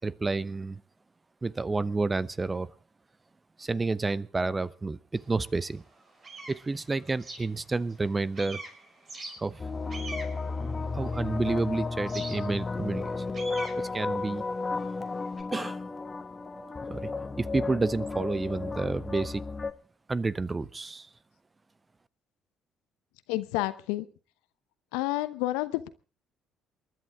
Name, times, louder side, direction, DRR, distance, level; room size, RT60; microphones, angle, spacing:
voice 1, 0.0-0.8 1.4-2.7 3.6-5.8 6.5-8.6 9.4-9.6 10.9-13.2 13.8-14.4 15.5-15.8 16.9-17.1 17.4-19.4 20.1-21.1, right 3 dB, 25° right, 18 dB, 0.8 m, -30 dB
sound 1, 5.1-5.3 5.8-8.1 8.3-11.5 12.1-15.4, right 2 dB, 45° right, 6.1 m, -44 dB
sound 2, 9.6-19.7, left 3 dB, 30° left, 1.3 m, -33 dB
voice 2, 23.3-24.1 24.9-25.9, left 17 dB, 75° left, 14 dB, 0.9 m, -29 dB
28.5 x 11.0 x 3.6 m, 0.36 s
hypercardioid pair, 50°, 0 cm